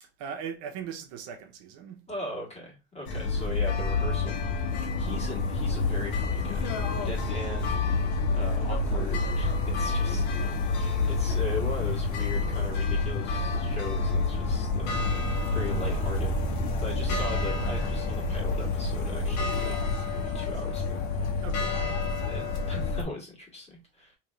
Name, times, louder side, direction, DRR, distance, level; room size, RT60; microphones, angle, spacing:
voice 1, 0.0-2.1 7.0-7.4 17.0-17.3 21.4-21.8, right 7 dB, 60° right, 0.9 m, -40 dB
voice 2, 2.1-7.7 8.3-10.3 10.7-16.3 16.8-19.8 20.1-21.3 21.7-24.2, left 1 dB, 20° left, 1.7 m, -39 dB
sound 1, 3.1-23.0, left 3 dB, 60° left, 1.2 m, -28 dB
3.7 x 2.9 x 3.2 m
supercardioid pair, 135°, 32 cm